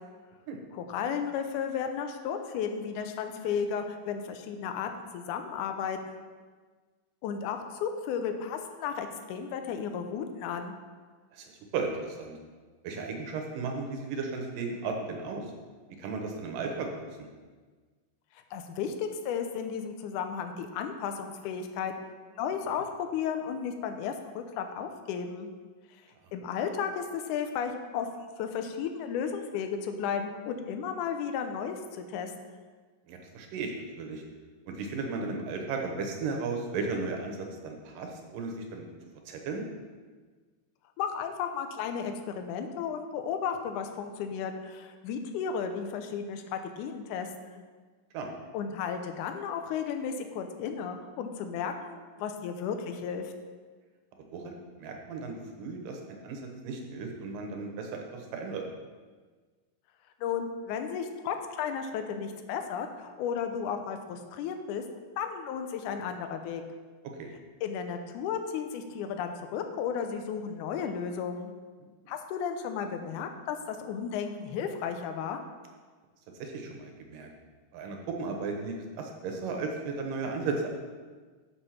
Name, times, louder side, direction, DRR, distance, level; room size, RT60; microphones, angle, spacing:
voice 1, 0.7-6.2 7.2-10.8 18.5-21.9 22.3-25.5 26.3-32.6 41.0-47.6 48.5-53.3 60.2-64.8 65.2-66.6 67.6-71.5 72.1-75.4, left 7 dB, 80° left, 6 dB, 2.1 m, -34 dB
voice 2, 11.3-12.4 12.8-15.5 16.0-17.3 33.1-34.2 34.7-38.9 39.3-39.6 48.1-48.3 54.3-58.6 67.2-67.3 71.8-71.9 76.4-77.3 77.7-80.7, right 4 dB, 85° right, 2 dB, 2.7 m, -35 dB
6.5 x 6.3 x 5.8 m, 1.4 s
omnidirectional pair, 3.8 m